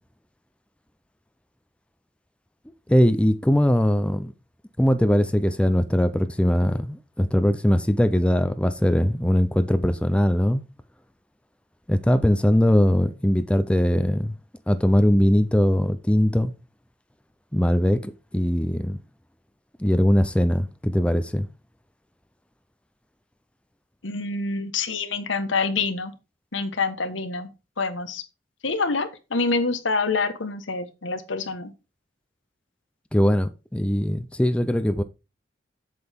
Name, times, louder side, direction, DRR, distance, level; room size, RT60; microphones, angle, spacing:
voice 1, 2.9-4.3 4.8-10.6 11.9-14.3 14.7-16.5 17.5-19.0 19.8-21.5 33.1-35.0, equal, 5° left, 0.5 m, -21 dB
voice 2, 24.0-26.1 26.5-27.5 27.8-28.2 28.6-31.7, left 4 dB, 80° left, 1.3 m, -26 dB
7.9 x 7.7 x 3.6 m
head